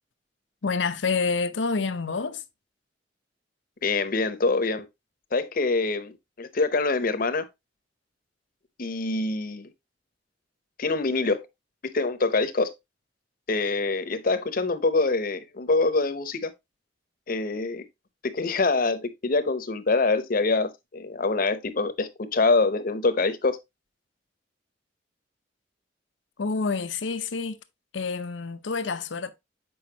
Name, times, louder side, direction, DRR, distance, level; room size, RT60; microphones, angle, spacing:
voice 1, 0.6-2.4 26.4-27.6 27.9-29.3, left 4 dB, 90° left, 0.7 m, -28 dB
voice 2, 3.8-4.9 5.3-7.5 8.8-9.7 10.8-11.5 11.9-12.7 13.5-16.5 17.3-17.8 18.2-23.6, left 3 dB, 50° left, 0.8 m, -25 dB
7.8 x 5.2 x 2.8 m
head